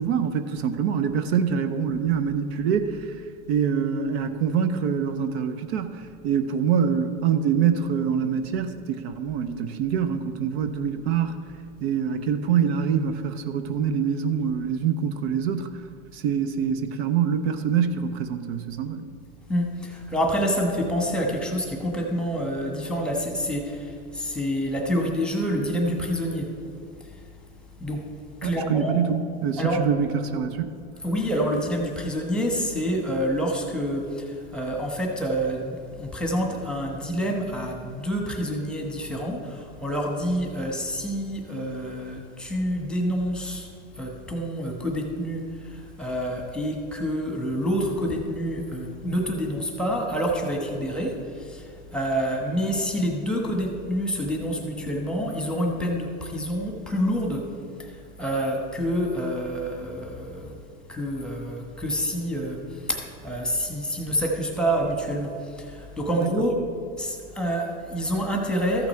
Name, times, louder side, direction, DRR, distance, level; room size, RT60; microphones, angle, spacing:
voice 1, 0.0-3.2 3.5-11.4 11.8-15.8 16.1-19.1 28.4-30.7 66.1-66.3, right 7 dB, 65° right, 9 dB, 0.7 m, -25 dB
voice 2, 19.5-26.5 27.0-27.2 27.8-28.1 28.4-29.0 29.6-29.9 31.0-43.7 44.0-57.5 57.8-60.5 60.9-66.6 67.0-68.9, equal, ahead, 1 dB, 1.2 m, -27 dB
14.0 x 5.9 x 4.4 m, 2.4 s
supercardioid pair, 135°, 34 cm